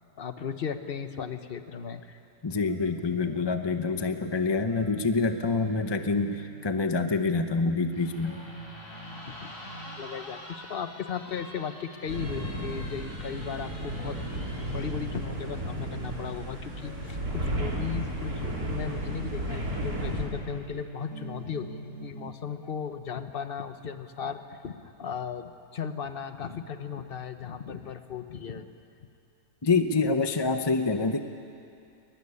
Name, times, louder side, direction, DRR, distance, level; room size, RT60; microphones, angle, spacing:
voice 1, 0.2-2.0 9.3-9.5 9.9-28.7, left 7 dB, 40° left, 9 dB, 1.2 m, -36 dB
voice 2, 2.4-8.4 29.6-31.2, left 3 dB, 25° left, 7 dB, 0.6 m, -26 dB
sound 1, 2.7-12.9 13.3-22.3, right 3 dB, 55° right, 5.7 m, -47 dB
sound 2, 7.9-15.0, left 1 dB, 60° left, 3.9 m, -46 dB
sound 3, 12.1-20.2, right 1 dB, 80° right, 4.2 m, -33 dB
22.5 x 21.0 x 9.8 m, 2.6 s
omnidirectional pair, 1.6 m